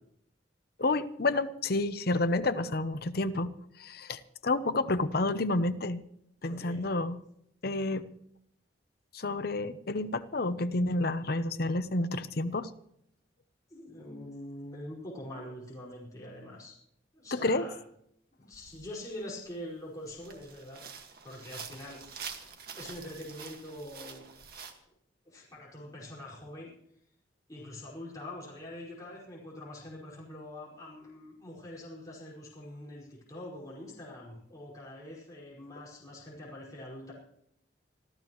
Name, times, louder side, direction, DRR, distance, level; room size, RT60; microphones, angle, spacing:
voice 1, 0.8-3.5 3.8-6.0 6.4-7.2 7.6-8.0 9.1-12.7 17.3-17.7, left 2 dB, 60° left, 12 dB, 0.8 m, -30 dB
voice 2, 6.4-6.8 13.7-16.8 17.1-17.8 18.4-20.8 21.2-22.1 22.8-24.2 25.2-26.7 27.5-37.1, left 1 dB, 20° left, -5 dB, 5.2 m, -44 dB
sound 1, 18.5-18.8 19.4-19.5 20.1-24.7, right 6 dB, 60° right, 1.8 m, -46 dB
25.5 x 14.5 x 3.1 m, 0.71 s
head